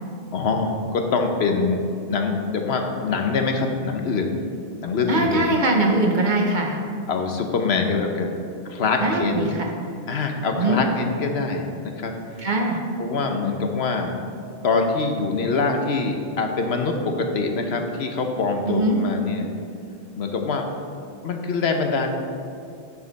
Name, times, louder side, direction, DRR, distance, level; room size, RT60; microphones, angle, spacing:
voice 1, 0.3-1.8 2.1-4.3 4.8-5.4 7.1-8.3 8.7-9.5 10.1-12.1 13.0-14.1 14.6-19.5 20.2-20.7 21.2-22.1, left 4 dB, 70° left, 4 dB, 1.0 m, -24 dB
voice 2, 5.1-6.8 9.0-9.7 10.6-10.8 12.4-12.8 18.6-19.0, right 2 dB, 45° right, 1 dB, 1.0 m, -21 dB
9.7 x 6.5 x 4.1 m, 2.5 s
omnidirectional pair, 1.1 m